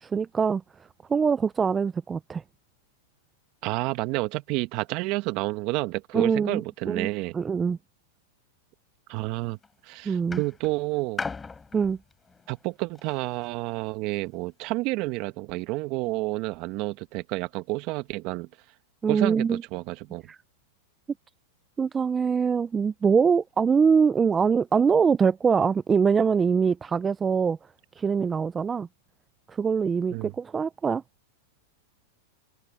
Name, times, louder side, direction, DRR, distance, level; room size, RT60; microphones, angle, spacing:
voice 1, 0.0-0.6 1.1-2.4 6.1-7.1 7.3-7.8 10.1-10.4 11.7-12.0 19.0-19.6 20.3-20.4 21.8-27.6 28.0-28.9 29.5-31.0, right 6 dB, 20° right, 0.5 m, -23 dB
voice 2, 3.6-7.3 9.1-9.6 9.8-11.2 12.5-18.5 19.1-20.2 30.1-30.3, right 22 dB, 50° right, 1.4 m, -30 dB
sound 1, 9.3-9.7 10.3-13.5 14.4-14.5, left 4 dB, 15° left, 4.8 m, -39 dB
hypercardioid pair, 120°, 0 cm